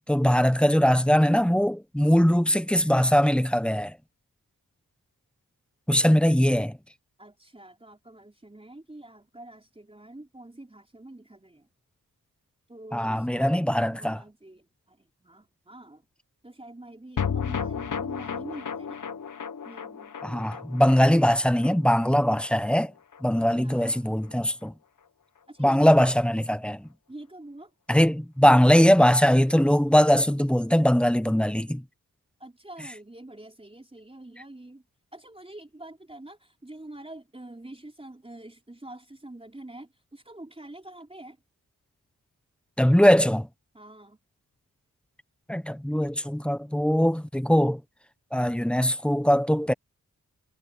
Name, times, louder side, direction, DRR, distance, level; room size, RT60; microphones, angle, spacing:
voice 1, 0.1-4.0 5.9-6.8 12.9-14.2 20.2-22.9 23.2-24.7 25.6-26.9 27.9-31.8 42.8-43.5 45.5-47.8 48.3-49.7, equal, 5° left, 1.1 m, -21 dB
voice 2, 7.2-11.7 12.7-16.0 16.4-19.0 19.6-20.1 23.4-24.1 25.5-26.2 27.1-27.7 32.4-34.8 35.1-41.4 43.7-44.2, right 1 dB, 15° right, 4.7 m, -46 dB
sound 1, 17.2-23.6 23.9-24.0 24.2-24.3, left 7 dB, 60° left, 1.4 m, -34 dB
wide cardioid pair, 70°, 36 cm